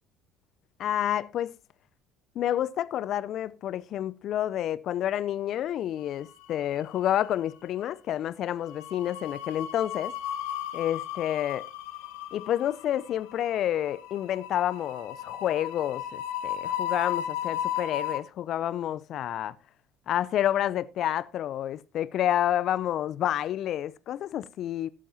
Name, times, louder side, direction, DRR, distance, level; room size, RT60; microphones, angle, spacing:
voice 1, 0.8-1.5 2.3-10.1 10.7-11.7 12.3-19.5 20.1-24.9, left 11 dB, 55° left, 0.6 m, -29 dB
sound 1, 6.1-6.9 7.2-7.4 8.6-18.2, left 10 dB, 70° left, 1.4 m, -35 dB
17.5 x 8.4 x 2.8 m
hypercardioid pair, 60°, 0 cm